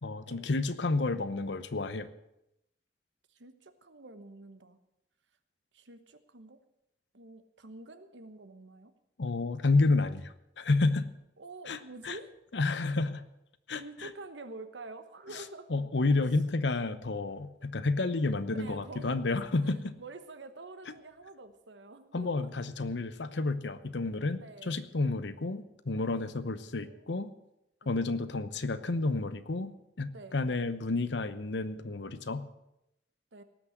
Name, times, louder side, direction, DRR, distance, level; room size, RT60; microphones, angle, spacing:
voice 1, 0.0-2.1 9.2-11.1 11.7-11.8 12.0-12.2 12.5-13.2 13.7-14.1 15.7-19.9 22.1-27.3 27.9-32.4, left 3 dB, 75° left, 13 dB, 0.9 m, -30 dB
voice 2, 3.3-4.8 5.7-6.6 7.1-8.9 11.4-12.3 13.7-15.7 18.5-19.3 19.6-22.5 24.3-24.8 26.4-26.5 26.8-27.1 27.8-28.0 30.1-30.4 33.3-33.4, right 3 dB, 90° right, 10 dB, 1.2 m, -48 dB
18.0 x 6.1 x 8.0 m, 0.86 s
head